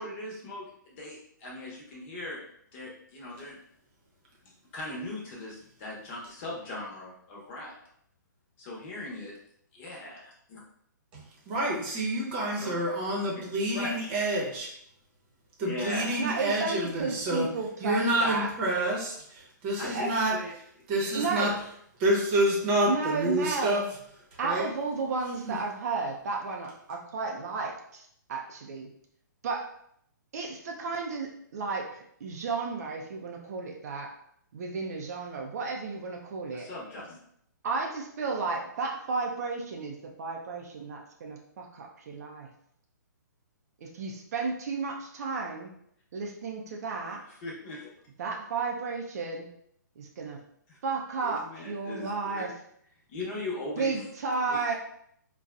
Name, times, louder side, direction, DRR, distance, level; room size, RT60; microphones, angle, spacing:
voice 1, 0.0-2.4 2.7-3.6 4.4-7.8 8.6-9.3 9.7-10.6 12.5-12.7 13.3-13.4 13.7-14.1 15.6-16.3 19.8-20.5 21.0-21.1 36.5-37.2 47.4-47.9 50.7-50.8 51.2-52.5 53.1-54.1 54.5-54.7, left 2 dB, 35° left, -3 dB, 1.0 m, -39 dB
voice 2, 11.1-14.7 15.6-17.5 17.8-20.4 20.9-21.5 22.0-23.8 24.4-24.7 25.4-25.6, right 1 dB, 35° right, -2 dB, 0.9 m, -28 dB
voice 3, 16.2-18.5 19.9-20.1 21.1-21.5 22.9-23.9 24.4-28.0 28.3-28.9 29.4-29.7 30.3-34.1 34.5-36.7 37.6-42.5 43.8-45.7 46.1-47.2 48.2-49.5 50.0-50.4 50.8-52.5 53.8-54.7, right 4 dB, 55° right, 1 dB, 0.5 m, -33 dB
4.0 x 2.3 x 2.4 m, 0.69 s
figure-of-eight pair, 130°, 11 cm